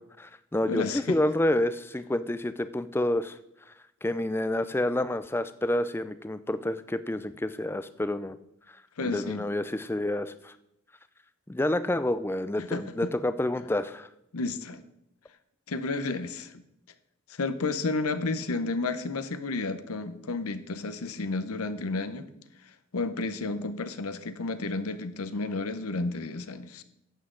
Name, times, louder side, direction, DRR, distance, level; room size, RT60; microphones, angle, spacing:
voice 1, 0.2-3.4 4.0-8.4 9.0-10.5 11.5-14.1, left 1 dB, 10° left, 13 dB, 0.3 m, -28 dB
voice 2, 0.7-1.2 9.0-9.5 12.6-13.1 14.3-14.8 15.7-16.6 17.3-22.3 22.9-26.8, left 3 dB, 85° left, 11 dB, 0.8 m, -31 dB
11.5 x 8.2 x 3.8 m, 0.81 s
head